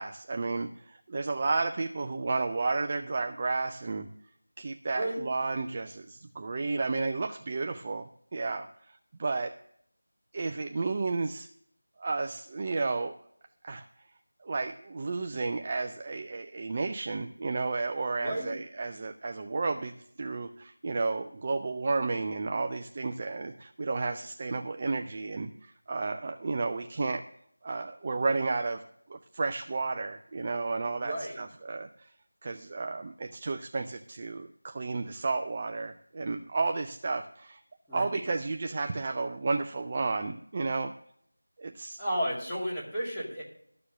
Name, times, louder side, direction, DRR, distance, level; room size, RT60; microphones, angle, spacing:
voice 1, 0.0-4.1 4.6-8.7 9.2-9.5 10.3-11.5 12.0-13.2 13.6-13.8 14.4-27.2 27.6-28.8 29.1-32.1 32.4-37.6 37.9-40.9 41.6-42.0, right 3 dB, 25° right, 6 dB, 0.4 m, -32 dB
voice 2, 4.9-5.3 18.2-18.6 31.0-31.4 37.9-38.2 42.0-43.4, equal, 5° left, -12 dB, 2.1 m, -32 dB
13.0 x 6.8 x 6.3 m, 0.68 s
figure-of-eight pair, 175°, 0 cm